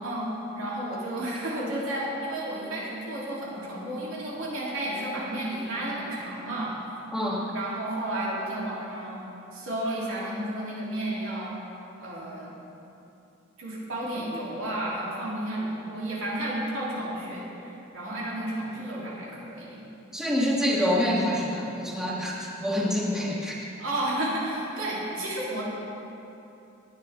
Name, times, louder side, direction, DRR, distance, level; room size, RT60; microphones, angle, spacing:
voice 1, 0.0-6.8 7.5-9.2 9.5-11.6 12.0-12.5 13.6-19.8 20.2-20.4 23.8-25.6, right 1 dB, 90° right, -6 dB, 3.4 m, -32 dB
voice 2, 7.1-7.4 20.1-23.6, equal, 5° right, -6 dB, 1.7 m, -26 dB
18.5 x 9.8 x 3.7 m, 2.9 s
head